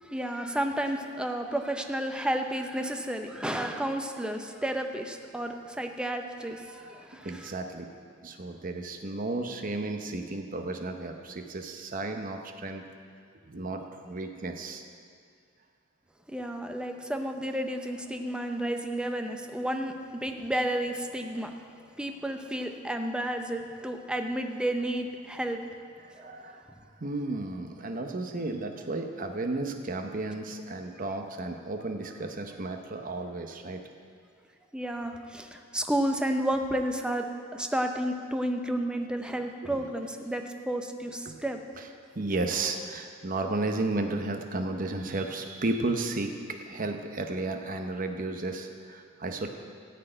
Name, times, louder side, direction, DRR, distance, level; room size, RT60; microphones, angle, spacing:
voice 1, 0.0-7.5 16.3-21.5 22.0-25.6 26.1-26.4 34.7-37.3 37.5-41.6, right 1 dB, 5° right, 5 dB, 0.6 m, -31 dB
voice 2, 7.2-7.9 8.2-12.8 13.5-14.8 26.1-26.7 27.0-33.8 39.6-39.7 41.3-41.4 42.1-49.5, right 2 dB, 45° right, 5 dB, 0.8 m, -33 dB
14.0 x 4.6 x 8.8 m, 2.2 s
head